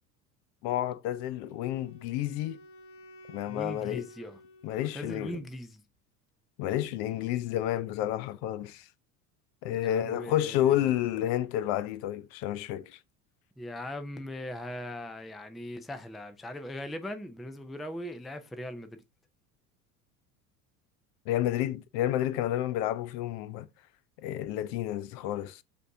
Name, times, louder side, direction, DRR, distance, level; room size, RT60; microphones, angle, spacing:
voice 1, 0.6-2.6 3.3-4.1 4.6-5.4 6.6-8.8 9.6-13.0 21.3-23.7 24.2-25.6, left 12 dB, 55° left, 0.5 m, -30 dB
Wind instrument woodwind instrument, 1.4-5.5, equal, 40° left, 1.0 m, -53 dB
voice 2, 3.4-4.4 4.9-5.8 9.7-10.9 13.6-19.0, left 1 dB, ahead, 0.4 m, -40 dB
5.1 x 2.7 x 3.4 m
hypercardioid pair, 75°, 46 cm